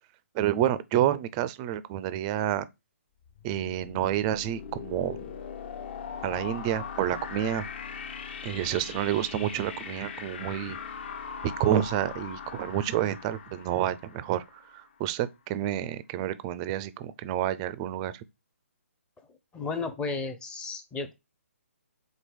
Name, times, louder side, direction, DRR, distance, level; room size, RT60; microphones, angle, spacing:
voice 1, 0.3-2.7 3.4-5.2 6.2-7.7 8.4-10.8 11.4-14.4 14.7-18.2, right 11 dB, 25° right, 0.4 m, -29 dB
sound 1, 3.2-14.9, left 6 dB, 45° left, 1.0 m, -40 dB
voice 2, 19.5-21.1, left 4 dB, 10° left, 0.7 m, -33 dB
4.6 x 3.9 x 5.2 m
hypercardioid pair, 145°, 8 cm